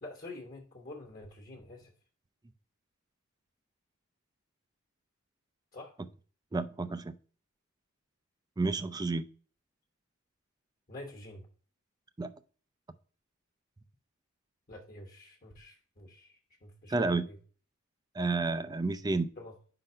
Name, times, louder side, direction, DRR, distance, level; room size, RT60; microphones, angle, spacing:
voice 1, 0.0-1.9 5.7-5.9 10.9-11.5 14.7-17.4 19.4-19.5, left 2 dB, 40° left, 1.1 m, -47 dB
voice 2, 6.5-7.1 8.6-9.3 12.2-12.3 16.9-17.2 18.1-19.3, right 3 dB, 20° right, 0.4 m, -30 dB
5.3 x 3.9 x 5.3 m
head